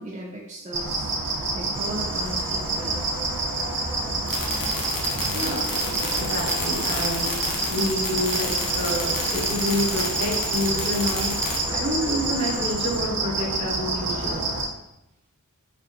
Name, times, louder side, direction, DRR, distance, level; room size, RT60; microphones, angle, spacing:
voice 1, 0.0-3.0 14.1-14.2, right 1 dB, 25° right, -1 dB, 0.3 m, -37 dB
sound 1, 0.7-14.7, right 2 dB, 85° right, 0.5 m, -28 dB
sound 2, 1.7-13.0, left 1 dB, 30° left, 0.5 m, -36 dB
sound 3, 4.3-11.6, left 3 dB, 75° left, 0.6 m, -31 dB
voice 2, 5.3-5.6 6.2-14.4, equal, 55° right, -6 dB, 1.1 m, -28 dB
2.7 x 2.1 x 2.5 m, 0.87 s
wide cardioid pair, 45°, 33 cm